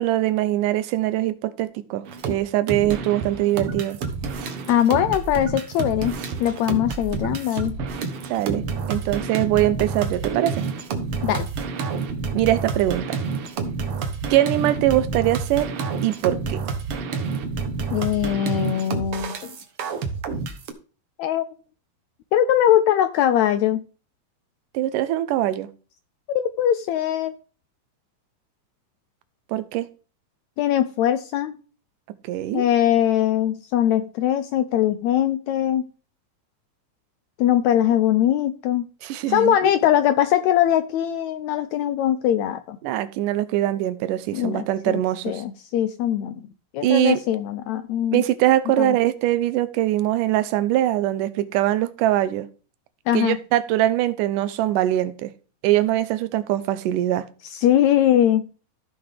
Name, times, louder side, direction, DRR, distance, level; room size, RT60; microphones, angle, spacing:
voice 1, 0.0-4.0 8.3-10.7 12.3-13.2 14.3-15.7 16.0-16.6 24.7-25.7 29.5-29.9 32.2-32.6 39.0-39.7 42.8-45.4 46.8-47.2 48.1-52.5 53.1-55.3 55.6-57.3, right 14 dB, 85° right, 2.2 m, -22 dB
sound 1, 2.1-2.3 2.7-20.7, right 4 dB, 60° right, 1.6 m, -29 dB
voice 2, 4.7-7.8 11.2-11.5 17.9-19.5 21.2-21.5 22.3-23.8 26.3-27.3 30.6-31.6 32.5-35.9 37.4-38.8 39.3-42.8 44.3-45.0 45.2-46.4 46.7-48.2 48.8-49.0 53.1-53.4 57.5-58.5, left 11 dB, 80° left, 1.6 m, -21 dB
14.5 x 5.8 x 3.4 m
omnidirectional pair, 3.7 m